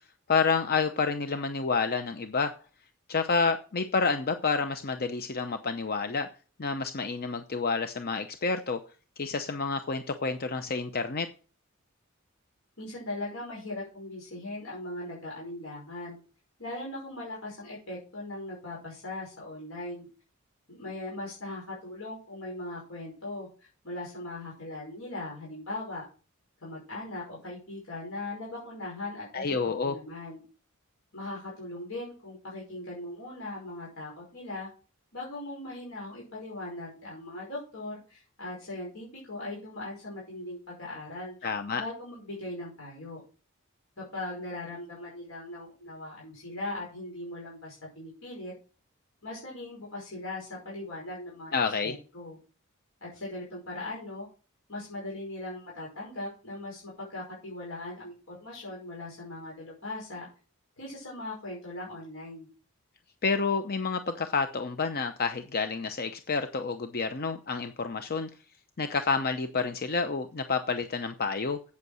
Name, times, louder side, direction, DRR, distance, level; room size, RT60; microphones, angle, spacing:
voice 1, 0.3-2.5 3.1-6.3 6.6-8.8 9.2-11.3 29.3-30.0 41.4-41.8 51.5-51.9 63.2-68.3 68.8-71.6, left 4 dB, 45° left, 8 dB, 0.7 m, -29 dB
voice 2, 12.8-16.2 16.6-20.1 20.7-26.1 26.6-30.4 31.1-34.7 35.1-41.4 41.7-43.2 44.0-48.5 49.2-52.4 53.0-54.3 54.7-60.3 60.8-62.5, left 2 dB, 70° left, -4 dB, 5.4 m, -39 dB
8.3 x 8.2 x 6.3 m, 0.37 s
head